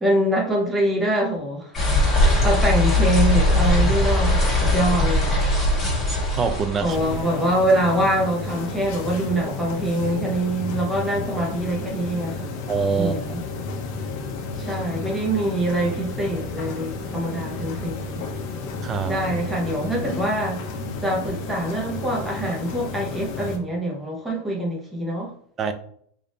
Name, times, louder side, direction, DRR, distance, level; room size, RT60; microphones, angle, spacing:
voice 1, 0.0-1.7 2.4-5.4 6.8-12.5 12.9-13.4 14.6-18.2 19.1-20.6 21.0-25.3, right 1 dB, 5° right, -3 dB, 0.8 m, -24 dB
sound 1, 1.7-7.2, left 1 dB, 15° left, 1.4 m, -20 dB
voice 2, 6.3-7.0 12.7-13.2 18.8-19.2 25.6-25.7, right 5 dB, 25° right, 8 dB, 0.4 m, -24 dB
sound 2, 6.9-23.6, left 3 dB, 50° left, 0.7 m, -32 dB
3.5 x 2.5 x 3.8 m, 0.63 s
supercardioid pair, 155°, 0 cm